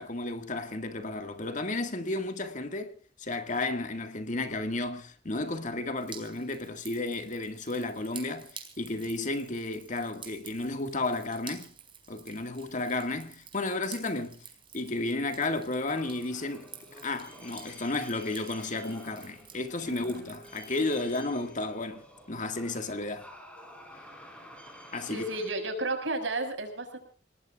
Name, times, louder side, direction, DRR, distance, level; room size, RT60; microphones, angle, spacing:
voice 1, 0.0-11.7 12.1-14.4 14.7-16.7 17.0-23.3 24.9-25.2, left 2 dB, 45° left, 2.0 m, -33 dB
Drip, 6.0-21.2, right 7 dB, 30° right, 4.5 m, -50 dB
sound 1, 15.8-25.5, equal, 5° left, 5.0 m, -50 dB
voice 2, 19.9-20.3 25.1-27.0, right 2 dB, 85° right, 5.9 m, -33 dB
29.5 x 19.0 x 2.5 m
head